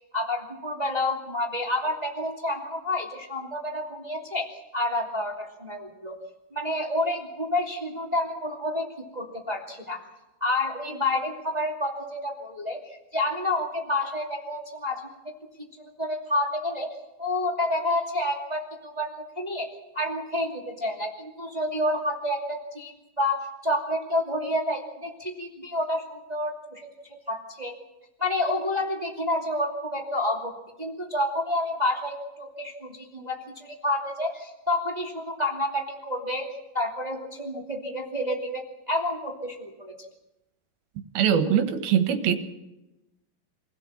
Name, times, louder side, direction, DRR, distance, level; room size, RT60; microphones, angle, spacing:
voice 1, 0.1-4.5 4.7-6.2 6.5-8.9 9.1-10.0 10.4-15.1 16.0-16.9 17.2-19.7 19.9-26.9 27.3-27.7 28.2-30.5 30.8-36.5 36.7-39.9, left 1 dB, 15° right, 1 dB, 2.0 m, -29 dB
voice 2, 41.1-42.3, right 8 dB, 75° right, 7 dB, 3.3 m, -22 dB
26.0 x 16.5 x 7.3 m, 0.98 s
omnidirectional pair, 4.4 m